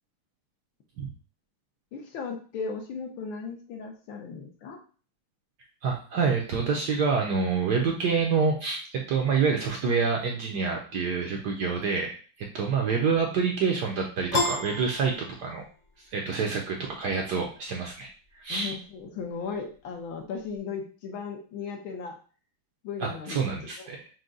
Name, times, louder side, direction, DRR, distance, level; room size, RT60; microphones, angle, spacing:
voice 1, 1.9-4.8 18.5-22.1 22.8-24.0, left 5 dB, 70° left, 2 dB, 1.6 m, -36 dB
voice 2, 5.8-15.1 15.4-15.6 16.1-18.1 18.4-18.7 23.0-24.0, right 5 dB, 65° right, 1 dB, 1.0 m, -27 dB
Piano, 14.3-15.9, left 2 dB, 50° left, 0.8 m, -30 dB
6.1 x 2.2 x 3.8 m, 0.39 s
omnidirectional pair, 2.4 m